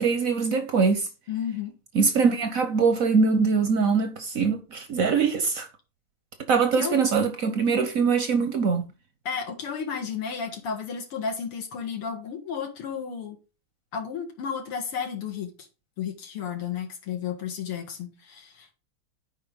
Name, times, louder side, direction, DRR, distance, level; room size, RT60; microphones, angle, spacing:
voice 1, 0.0-1.1 1.9-5.7 6.5-8.9, right 5 dB, 55° right, 0.9 m, -23 dB
voice 2, 1.3-1.7 6.8-7.0 9.3-13.4 13.9-15.5 16.0-18.7, left 7 dB, 90° left, 2.6 m, -32 dB
10.5 x 4.8 x 3.7 m
omnidirectional pair, 2.4 m